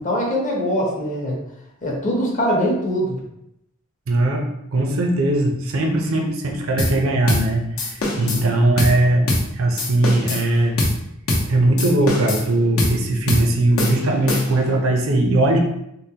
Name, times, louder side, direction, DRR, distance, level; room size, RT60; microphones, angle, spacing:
voice 1, 0.0-1.4 1.8-3.2 5.8-5.9 8.1-8.4, equal, 35° left, -2 dB, 0.8 m, -22 dB
voice 2, 4.1-4.5 4.7-7.9 8.2-10.8 11.5-15.6, right 1 dB, 70° right, 2 dB, 0.5 m, -19 dB
sound 1, 6.8-7.0 7.3-7.5 7.8-8.4 8.8-9.0 9.3-9.5 9.8-10.4 10.8-11.0 11.3-11.5 11.8-12.5 12.8-13.0 13.3-13.5 13.8-14.7, left 1 dB, 75° left, 0.7 m, -23 dB
3.7 x 2.1 x 2.8 m, 0.80 s
head